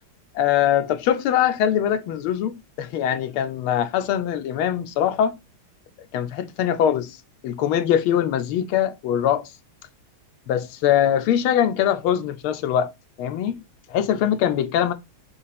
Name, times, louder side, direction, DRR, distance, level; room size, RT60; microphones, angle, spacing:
voice 1, 0.3-5.4 6.1-7.2 7.4-9.5 10.5-12.9 13.2-13.6 13.9-14.9, left 10 dB, 85° left, 1.5 m, -22 dB
5.3 x 2.4 x 4.1 m
omnidirectional pair, 2.3 m